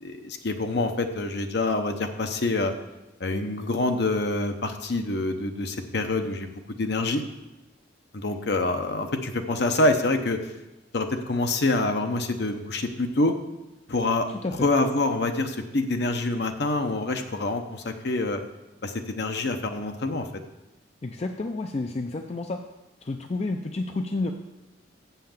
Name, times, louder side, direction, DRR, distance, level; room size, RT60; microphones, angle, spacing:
voice 1, 0.0-2.7 3.2-6.5 6.8-7.2 8.1-10.4 10.9-13.3 13.9-14.3 14.6-18.4 18.8-20.3, left 2 dB, 55° left, 6 dB, 0.8 m, -26 dB
voice 2, 21.0-22.6 23.0-24.3, left 2 dB, 35° left, 5 dB, 0.4 m, -30 dB
7.6 x 5.7 x 7.2 m, 1.0 s
head